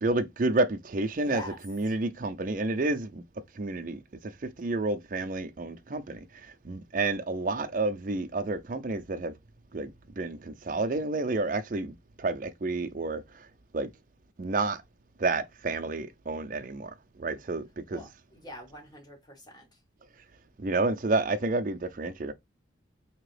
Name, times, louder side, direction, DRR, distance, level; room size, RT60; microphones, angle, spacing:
voice 1, 0.0-3.2 3.6-6.2 6.6-9.3 9.7-11.9 12.2-13.2 13.7-13.9 14.4-14.8 15.2-16.9 17.2-18.0 20.6-22.3, right 3 dB, 45° right, 0.5 m, -30 dB
voice 2, 1.1-1.6 17.9-19.7, equal, 20° left, 1.5 m, -43 dB
3.7 x 2.9 x 3.2 m
head